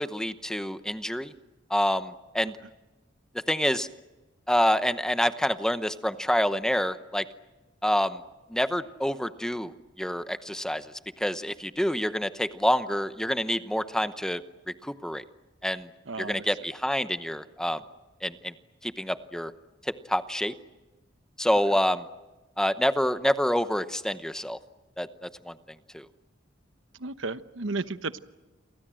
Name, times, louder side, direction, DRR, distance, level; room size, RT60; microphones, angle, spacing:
voice 1, 0.0-1.3 1.7-2.6 3.5-3.9 4.5-7.2 7.8-8.2 8.5-9.7 10.0-10.9 11.2-15.2 15.6-15.9 16.2-17.8 18.2-18.5 18.8-19.5 19.8-20.5 21.4-22.1 22.6-24.6 25.0-25.5 25.9-26.1, equal, 5° left, 11 dB, 0.9 m, -27 dB
voice 2, 16.1-16.5 27.0-28.2, right 3 dB, 90° right, 12 dB, 1.0 m, -33 dB
29.0 x 24.0 x 7.7 m, 1.1 s
head